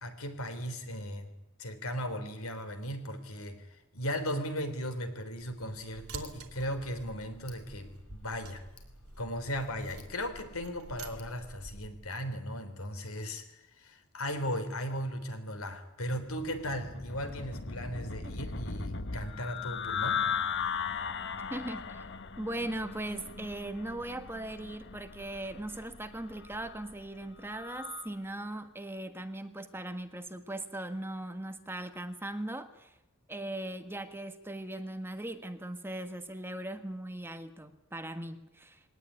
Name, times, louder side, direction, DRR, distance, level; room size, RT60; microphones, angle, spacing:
voice 1, 0.0-8.6 9.2-20.2, equal, 75° left, 9 dB, 3.6 m, -37 dB
Tick, 5.4-11.4, left 2 dB, 90° left, 4.6 m, -57 dB
sound 1, 5.9-12.1, right 3 dB, 85° right, 2.7 m, -49 dB
sound 2, 16.2-28.1, left 6 dB, 55° left, 1.3 m, -38 dB
voice 2, 21.5-22.0 22.4-32.9 33.3-38.8, right 1 dB, 10° right, 8 dB, 1.4 m, -39 dB
22.0 x 18.5 x 9.9 m, 0.90 s
head